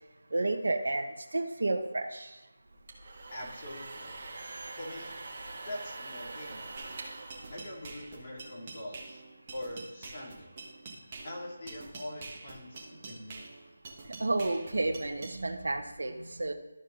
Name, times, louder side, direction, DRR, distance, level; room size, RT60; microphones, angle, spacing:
voice 1, 0.3-2.4 14.2-16.5, right 2 dB, 80° right, 4 dB, 1.1 m, -31 dB
sound 1, 2.7-8.4, right 2 dB, 45° right, 1.9 m, -44 dB
voice 2, 3.3-4.1 4.8-5.1 5.6-6.8 7.5-9.2 9.5-10.5 11.2-13.4, left 1 dB, 35° left, -3 dB, 2.4 m, -43 dB
sound 2, 6.8-15.4, right 3 dB, 25° right, 1.5 m, -46 dB
13.0 x 4.7 x 3.8 m, 1.1 s
figure-of-eight pair, 170°, 0 cm